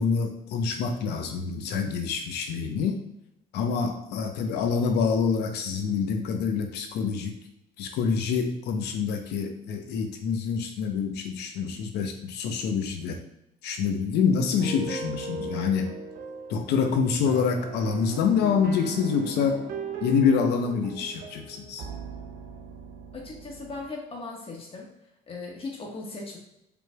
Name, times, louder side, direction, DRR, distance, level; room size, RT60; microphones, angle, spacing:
voice 1, 0.0-3.0 3.5-7.3 7.8-13.2 13.6-15.9 16.5-19.6 20.0-21.8, left 6 dB, 80° left, 5 dB, 0.7 m, -26 dB
sound 1, 14.6-23.9, right 4 dB, 75° right, 0.6 m, -38 dB
voice 2, 23.1-24.9 25.3-26.4, left 3 dB, 35° left, -1 dB, 1.2 m, -38 dB
5.1 x 3.1 x 2.2 m, 0.83 s
cardioid pair, 110°, 17 cm